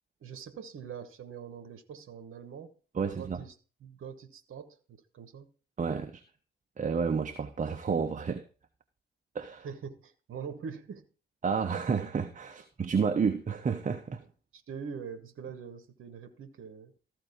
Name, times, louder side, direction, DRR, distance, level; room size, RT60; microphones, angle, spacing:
voice 1, 0.2-5.5 9.6-11.1 14.5-16.9, right 6 dB, 45° right, 1.2 m, -44 dB
voice 2, 2.9-3.4 5.8-6.2 6.8-8.4 9.3-9.7 11.4-14.2, right 5 dB, 25° right, 0.9 m, -30 dB
14.0 x 4.7 x 4.5 m
figure-of-eight pair, 40°, 29 cm